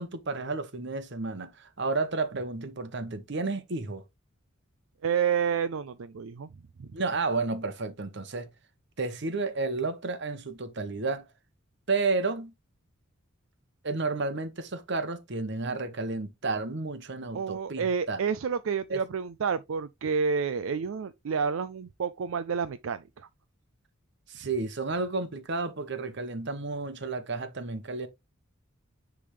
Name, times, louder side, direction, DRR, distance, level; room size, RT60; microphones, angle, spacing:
voice 1, 0.0-4.0 6.9-8.5 9.0-11.2 11.9-12.5 13.8-18.2 18.9-19.0 24.3-28.1, right 3 dB, 55° right, 1.0 m, -31 dB
voice 2, 5.0-6.5 6.8-6.9 17.3-23.3, right 6 dB, 75° right, 0.4 m, -29 dB
10.0 x 3.5 x 3.1 m
head